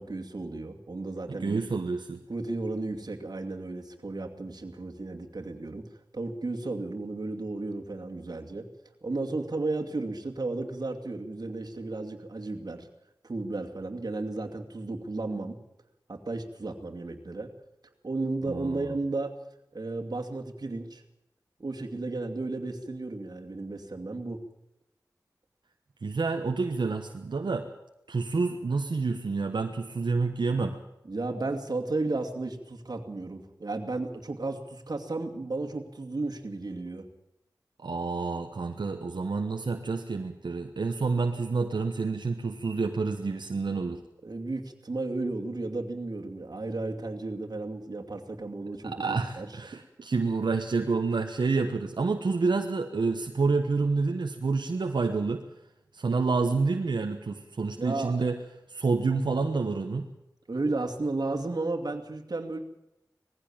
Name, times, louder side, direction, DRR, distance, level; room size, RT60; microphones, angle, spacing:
voice 1, 0.0-1.6 2.3-5.8 6.1-8.7 9.0-12.9 13.2-15.6 16.1-17.5 18.0-19.4 19.7-21.0 21.6-24.4 31.0-37.1 44.2-49.7 57.7-58.2 60.5-62.6, right 2 dB, 60° right, 3 dB, 2.5 m, -34 dB
voice 2, 1.3-2.2 18.5-18.9 26.0-27.7 28.1-30.8 37.8-44.0 48.8-55.4 55.9-58.4 58.7-60.1, right 4 dB, 85° right, 4 dB, 1.2 m, -28 dB
20.0 x 15.5 x 8.9 m, 0.88 s
wide cardioid pair, 55°, 8 cm